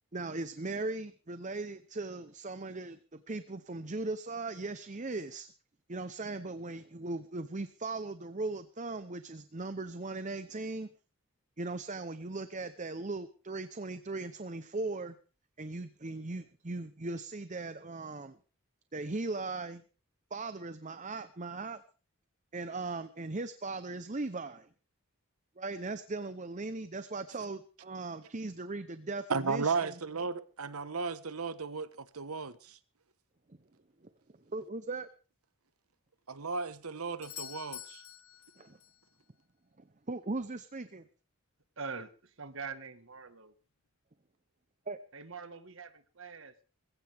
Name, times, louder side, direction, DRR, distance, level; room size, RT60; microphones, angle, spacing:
voice 1, 0.1-5.5 5.9-10.9 11.6-15.2 15.6-18.4 18.9-19.8 20.3-21.8 22.5-24.7 25.6-30.0 33.5-33.6 34.0-34.1 34.5-35.1 38.6-38.8 39.8-41.1 44.9-45.0, right 3 dB, 35° right, 0.8 m, -38 dB
voice 2, 29.3-32.8 36.3-38.0, right 4 dB, 85° right, 1.2 m, -35 dB
Doorbell, 37.2-39.1 43.1-43.2, left 11 dB, 70° left, 1.5 m, -47 dB
voice 3, 41.8-42.1 42.4-43.5 45.1-46.6, right 5 dB, 60° right, 1.6 m, -43 dB
21.0 x 16.0 x 3.6 m
head